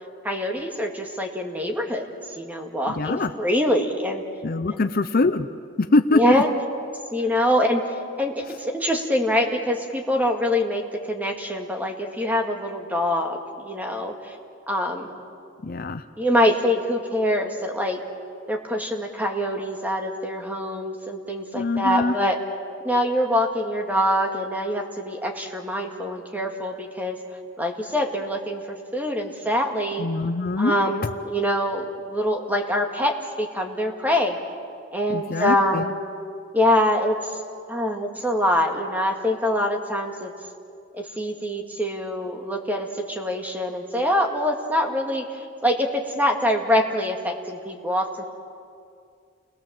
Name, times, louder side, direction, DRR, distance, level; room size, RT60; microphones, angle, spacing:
voice 1, 0.2-2.0 2.4-4.2 4.8-4.9 6.1-6.5 7.1-7.8 8.2-14.3 14.7-15.2 16.2-18.0 18.5-22.4 22.8-27.2 27.6-30.1 30.6-34.4 34.9-35.9 36.5-37.4 37.7-40.3 40.9-48.2, left 1 dB, 10° right, 3 dB, 1.9 m, -24 dB
voice 2, 2.9-3.3 4.4-5.5 5.8-6.4 15.6-16.0 21.5-22.2 30.0-30.7 31.0-31.1 35.1-35.9, left 3 dB, 45° left, 9 dB, 0.6 m, -23 dB
30.0 x 20.5 x 7.5 m, 2.4 s
head